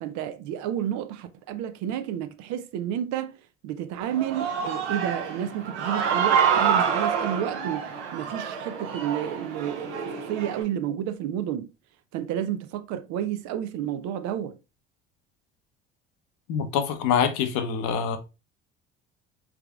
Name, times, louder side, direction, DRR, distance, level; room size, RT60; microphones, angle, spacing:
voice 1, 0.0-11.7 12.1-14.6, right 10 dB, 55° right, 0.6 m, -31 dB
Human voice / Cheering, 4.0-10.6, right 7 dB, 70° right, 0.9 m, -27 dB
voice 2, 16.5-18.2, left 7 dB, 60° left, 0.8 m, -25 dB
3.6 x 3.3 x 2.3 m
figure-of-eight pair, 55°, 35 cm